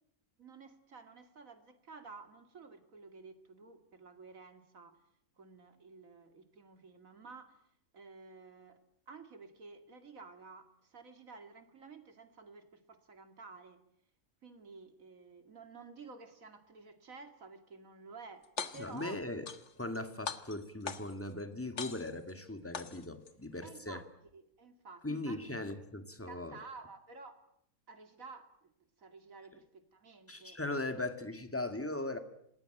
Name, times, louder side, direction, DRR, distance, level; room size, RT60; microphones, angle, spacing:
voice 1, 0.4-5.0 5.4-7.6 7.9-8.8 9.1-13.8 14.4-18.5 18.7-19.2 23.6-24.1 24.3-25.5 26.3-27.4 27.9-28.7 29.0-30.6, right 4 dB, 60° right, 8 dB, 2.8 m, -52 dB
sound 1, 18.4-19.0 19.5-20.0 20.3-21.3 21.8-22.3 22.7-23.3, left 5 dB, 50° left, 1.7 m, -41 dB
voice 2, 18.7-19.5 19.7-24.0 25.0-26.6 30.3-32.2, left 2 dB, 10° left, 8 dB, 1.9 m, -39 dB
27.5 x 19.5 x 9.1 m, 0.74 s
omnidirectional pair, 1.6 m